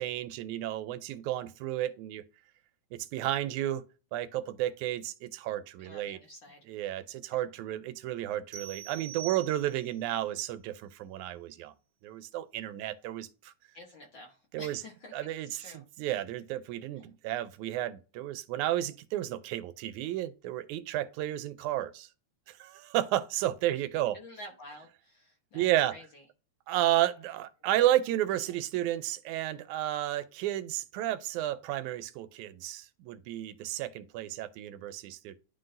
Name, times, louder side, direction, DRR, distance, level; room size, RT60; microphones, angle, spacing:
voice 1, 0.0-2.2 2.9-6.2 6.7-11.7 12.0-13.5 14.5-14.8 15.1-22.1 22.5-24.2 25.5-26.0 26.7-35.4, right 13 dB, 90° right, 2.0 m, -32 dB
voice 2, 5.8-6.7 7.3-7.4 8.9-9.0 13.7-15.8 16.9-17.1 24.1-26.2 28.4-28.5, left 1 dB, 60° left, 1.3 m, -50 dB
sound 1, 8.5-10.0, right 11 dB, 70° right, 1.5 m, -44 dB
11.0 x 3.8 x 2.6 m
omnidirectional pair, 3.4 m